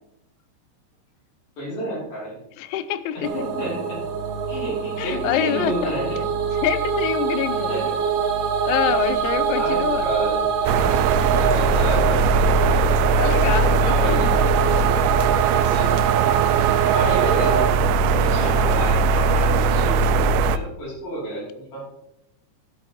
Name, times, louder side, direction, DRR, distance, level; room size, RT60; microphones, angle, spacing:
voice 1, 1.6-2.4 3.1-4.0 4.5-6.2 7.5-7.9 8.8-9.2 9.5-10.4 11.4-13.0 13.8-14.4 15.6-16.1 16.9-17.7 18.1-21.9, equal, 55° left, -5 dB, 4.7 m, -30 dB
voice 2, 2.6-3.3 5.0-5.9 6.6-7.7 8.7-10.1 13.2-14.3 18.4-18.6, left 10 dB, 90° left, 13 dB, 3.0 m, -25 dB
sound 1, 3.2-17.7, right 6 dB, 65° right, 2.2 m, -24 dB
sound 2, 10.7-20.6, right 4 dB, 85° right, 2.8 m, -19 dB
14.5 x 10.5 x 3.0 m, 0.84 s
omnidirectional pair, 5.3 m